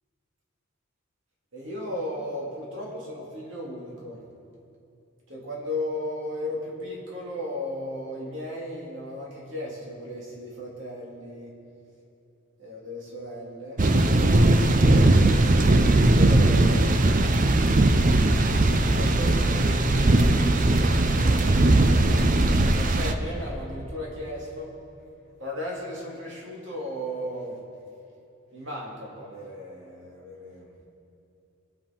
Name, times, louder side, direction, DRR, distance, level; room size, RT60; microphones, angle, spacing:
voice 1, 1.5-4.2 5.3-11.5 12.6-13.8 14.5-17.0 18.4-22.3 22.7-24.7 25.4-27.6 28.5-30.7, left 1 dB, 60° right, -3 dB, 2.8 m, -36 dB
sound 1, 13.8-23.1, right 2 dB, 40° right, 0.6 m, -19 dB
21.5 x 7.4 x 4.5 m, 2.6 s
head